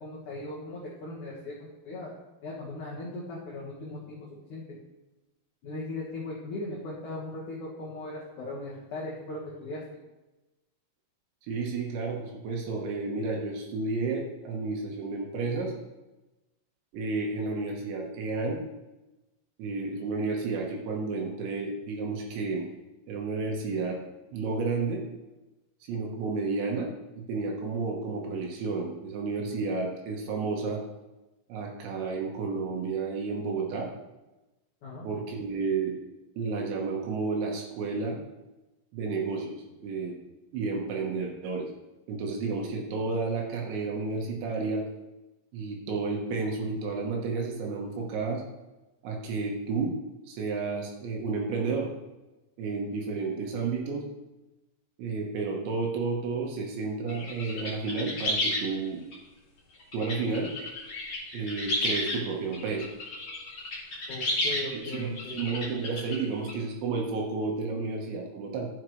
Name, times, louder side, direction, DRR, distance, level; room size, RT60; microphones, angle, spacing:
voice 1, 0.0-1.5 1.8-2.1 2.4-4.2 4.5-4.8 5.6-9.8 34.8-35.1 64.1-65.5, left 2 dB, 80° left, -5 dB, 1.7 m, -38 dB
voice 2, 11.5-15.7 16.9-18.6 19.6-22.7 23.1-24.0 24.3-25.0 25.9-26.9 27.1-30.8 31.5-33.9 35.0-35.9 36.4-38.2 38.9-40.1 40.5-41.7 42.1-44.8 45.5-48.4 49.0-50.0 50.3-51.9 52.6-54.0 55.0-59.0 59.9-60.5 61.3-62.9 64.4-68.7, right 4 dB, 70° right, 0 dB, 3.1 m, -31 dB
sound 1, 57.1-58.6 59.1-59.2 59.8-62.2 62.5-66.5, left 1 dB, 45° left, 1.9 m, -32 dB
12.5 x 7.3 x 3.1 m, 1.1 s
omnidirectional pair, 6.0 m